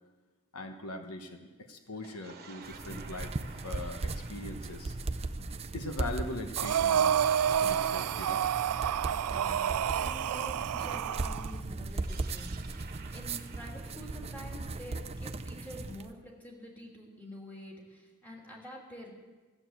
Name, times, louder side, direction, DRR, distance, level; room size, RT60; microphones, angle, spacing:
voice 1, 0.5-4.9 5.7-7.2 7.6-8.4, left 2 dB, 80° left, 6 dB, 1.2 m, -41 dB
sound 1, 1.9-6.3 6.9-10.8 11.8-15.7, right 6 dB, 45° right, 1.3 m, -53 dB
sound 2, 2.6-16.1, right 3 dB, 30° right, 0.5 m, -38 dB
Breathing, 6.6-11.5, right 9 dB, 80° right, 0.3 m, -29 dB
voice 2, 9.3-12.9 13.1-19.1, left 1 dB, 10° left, -3 dB, 2.9 m, -47 dB
14.5 x 8.6 x 8.0 m, 1.3 s
head